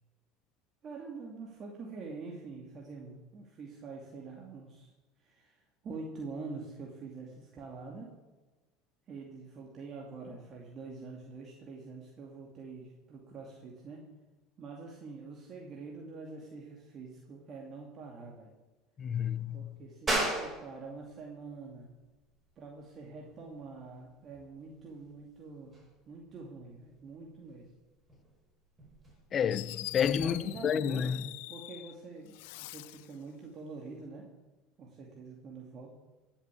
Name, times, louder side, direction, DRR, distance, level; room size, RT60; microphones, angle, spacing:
voice 1, 0.8-4.9 5.2-8.1 9.1-14.1 14.6-18.5 19.5-21.9 22.6-25.8 26.1-27.7 30.2-31.1 31.5-34.3 34.8-35.9, right 4 dB, 40° right, 2.6 m, -45 dB
voice 2, 19.0-19.8 29.3-31.2, left 8 dB, 35° left, 0.7 m, -30 dB
sound 1, 20.1-30.3, right 1 dB, 20° right, 5.9 m, -40 dB
Fireworks, 29.1-29.2 29.5-31.9 32.3-33.1, left 20 dB, 75° left, 0.4 m, -43 dB
16.0 x 7.4 x 8.4 m
supercardioid pair, 100°, 0 cm